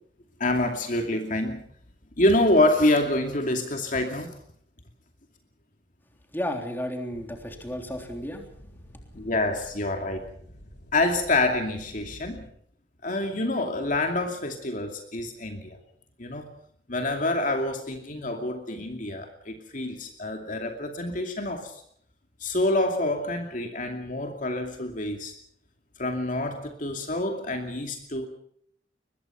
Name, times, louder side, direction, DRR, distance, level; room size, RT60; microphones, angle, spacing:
voice 1, 0.4-1.6 2.2-4.4 9.1-10.2 10.9-12.5 13.0-15.8 16.2-16.5 16.9-21.8 22.4-25.3 26.0-28.3, left 2 dB, 45° left, 4 dB, 2.6 m, -27 dB
voice 2, 6.3-8.4, equal, 10° left, 3 dB, 3.5 m, -33 dB
sound 1, 7.1-12.5, equal, 65° left, 4.9 m, -49 dB
23.0 x 21.0 x 6.0 m, 0.65 s
head